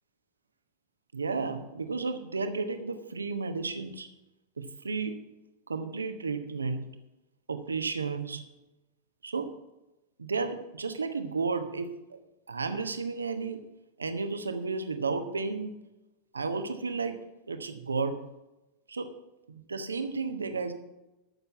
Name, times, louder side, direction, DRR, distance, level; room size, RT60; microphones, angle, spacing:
voice 1, 1.1-4.1 4.6-5.3 5.7-6.9 7.5-8.5 9.2-9.6 10.2-12.2 12.5-13.6 14.0-15.8 16.3-18.3 18.9-19.1 19.5-20.7, right 4 dB, 75° right, 9 dB, 1.0 m, -33 dB
13.5 x 7.0 x 5.8 m, 1.0 s
figure-of-eight pair, 90°, 0 cm